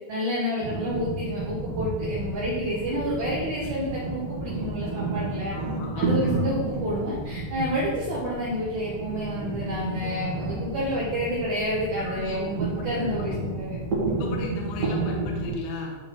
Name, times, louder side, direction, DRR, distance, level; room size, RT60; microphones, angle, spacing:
voice 1, 0.1-5.5 6.0-13.8, equal, 90° right, -6 dB, 1.6 m, -29 dB
sound 1, 0.6-15.6, right 2 dB, 60° right, 1.9 m, -31 dB
voice 2, 5.5-6.4 10.0-10.2 12.0-12.4 14.2-16.0, left 3 dB, 75° left, 0 dB, 2.1 m, -36 dB
11.0 x 4.0 x 2.9 m, 1.3 s
omnidirectional pair, 5.1 m